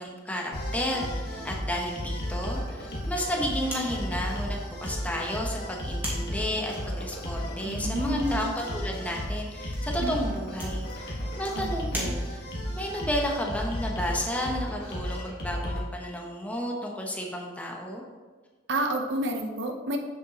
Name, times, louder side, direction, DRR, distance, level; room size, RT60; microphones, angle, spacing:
voice 1, 0.0-18.0, equal, 10° left, -1 dB, 0.9 m, -32 dB
sound 1, 0.5-15.8, equal, 55° left, 1.4 m, -33 dB
sound 2, 3.6-12.7, right 1 dB, 10° right, 1.5 m, -42 dB
voice 2, 7.6-8.4 10.0-10.4 11.5-12.1 18.7-20.0, right 1 dB, 65° right, 4 dB, 0.7 m, -30 dB
8.2 x 6.8 x 2.9 m, 1.4 s
head